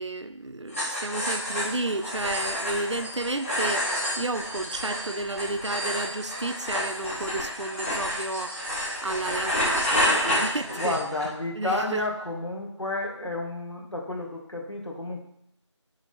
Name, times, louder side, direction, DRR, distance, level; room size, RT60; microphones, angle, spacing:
voice 1, 0.0-3.9 4.2-8.6 9.0-11.0 11.6-12.0, right 2 dB, 70° right, 10 dB, 0.6 m, -32 dB
sound 1, 0.7-11.3, equal, 25° left, 2.6 m, -29 dB
voice 2, 10.8-15.2, left 2 dB, 70° left, -1 dB, 1.9 m, -31 dB
7.8 x 3.7 x 4.4 m, 0.72 s
figure-of-eight pair, 175°, 16 cm